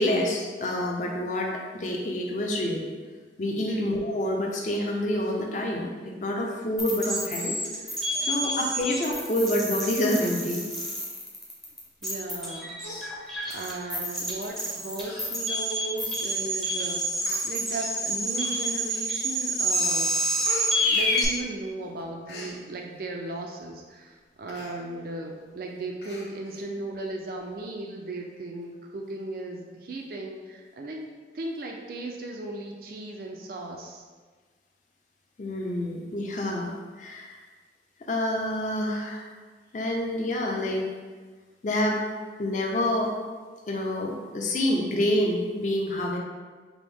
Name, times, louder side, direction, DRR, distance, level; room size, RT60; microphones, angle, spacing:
voice 1, 0.0-2.9 3.4-7.6 8.2-10.6 35.4-36.7 37.0-37.4 38.0-39.3 39.7-40.9 41.6-42.0 42.4-43.1 43.7-46.2, left 1 dB, 45° left, 0 dB, 0.5 m, -27 dB
voice 2, 3.7-4.0 8.1-8.6 12.0-12.8 13.5-17.1 17.4-20.1 20.9-31.1 31.3-34.1, right 2 dB, 50° right, 1 dB, 0.4 m, -36 dB
sound 1, 6.8-21.3, equal, ahead, 0.5 m, -28 dB
Human voice, 12.3-12.5 12.8-13.7 14.5-14.6 15.0-15.3 15.6-15.7 16.5-16.6 17.2-17.4 18.3-18.9 19.4-19.7 20.0-21.7 22.0-22.5 24.5-24.8 25.1-25.2 25.5-25.6 26.0-26.6 27.0-27.1, left 1 dB, 80° left, 0.7 m, -42 dB
4.9 x 2.0 x 3.4 m, 1.4 s
head